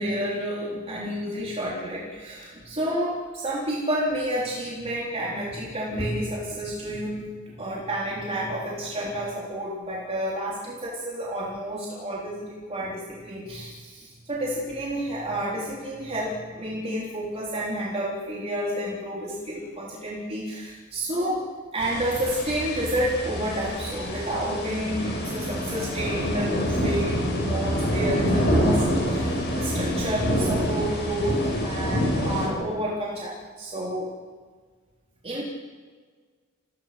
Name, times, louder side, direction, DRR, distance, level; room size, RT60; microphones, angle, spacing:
voice 1, 0.0-7.2 7.6-21.4 21.7-34.1 35.2-35.4, equal, 30° right, -5 dB, 3.9 m, -30 dB
sound 1, 21.8-32.5, equal, 55° left, 7.1 m, -26 dB
30.0 x 18.5 x 6.0 m, 1.6 s
head